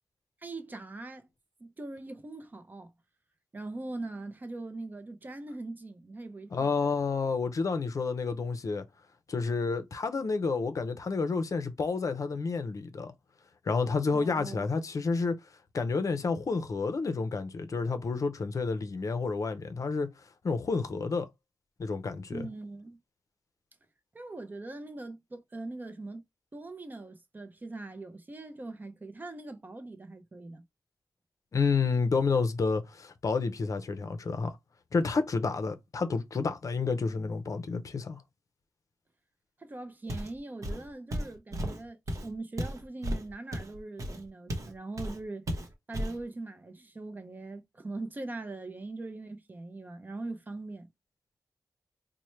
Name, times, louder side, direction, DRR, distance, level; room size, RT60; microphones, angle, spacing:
voice 1, 0.4-1.3 1.6-2.9 3.5-6.7 14.1-14.7 22.3-23.0 24.1-26.2 26.5-30.6 39.6-42.0 42.2-45.5 45.9-50.9, right 2 dB, 25° right, 0.5 m, -41 dB
voice 2, 6.5-8.8 9.3-13.1 13.7-15.4 15.7-20.1 20.4-21.3 21.8-22.5 31.5-34.6 34.9-38.2, left 4 dB, 50° left, 0.5 m, -30 dB
Walk footsteps, 40.1-40.4 40.6-44.7 45.0-45.2 45.5-46.2, equal, 50° right, 0.8 m, -34 dB
4.3 x 2.1 x 3.1 m
wide cardioid pair, 150°, 7 cm